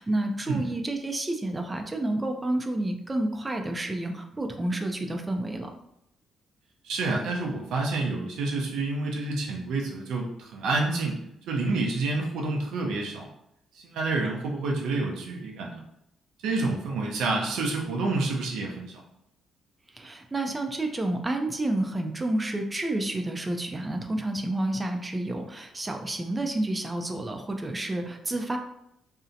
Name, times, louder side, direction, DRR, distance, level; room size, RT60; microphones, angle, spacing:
voice 1, 0.0-5.7 19.9-28.6, right 1 dB, 20° right, 4 dB, 0.4 m, -30 dB
voice 2, 6.8-11.2 11.5-13.3 13.7-15.8 16.4-19.0, right 3 dB, 85° right, 0 dB, 0.5 m, -28 dB
2.6 x 2.0 x 2.5 m, 0.79 s
cardioid pair, 90°, 0 cm